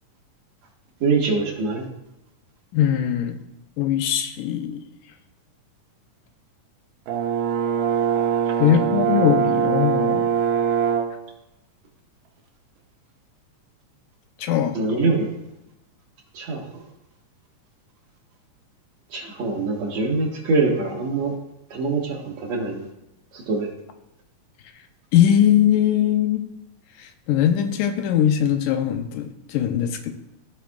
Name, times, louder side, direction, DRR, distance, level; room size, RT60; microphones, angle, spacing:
voice 1, 1.0-1.8 14.7-15.3 16.3-16.6 19.1-21.3 21.7-22.9 23.3-23.7, right 3 dB, 60° right, -1 dB, 2.6 m, -23 dB
voice 2, 2.7-3.4 3.8-4.8 8.6-10.3 14.4-15.0 25.1-26.5 27.0-30.2, left 10 dB, 90° left, 7 dB, 2.2 m, -21 dB
Brass instrument, 7.1-11.2, right 8 dB, 85° right, 2.4 m, -22 dB
16.0 x 5.8 x 2.4 m, 0.88 s
omnidirectional pair, 3.7 m